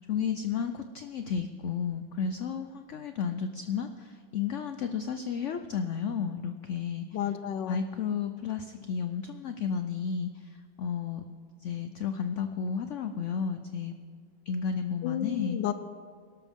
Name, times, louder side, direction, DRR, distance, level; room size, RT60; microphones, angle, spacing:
voice 1, 0.0-7.1 7.7-10.3 10.8-11.2 11.6-13.9 14.5-15.6, left 6 dB, 65° left, 8 dB, 0.7 m, -32 dB
voice 2, 7.1-7.8 15.0-15.7, left 11 dB, 85° left, 11 dB, 1.3 m, -31 dB
22.5 x 12.5 x 3.6 m, 2.1 s
omnidirectional pair, 1.9 m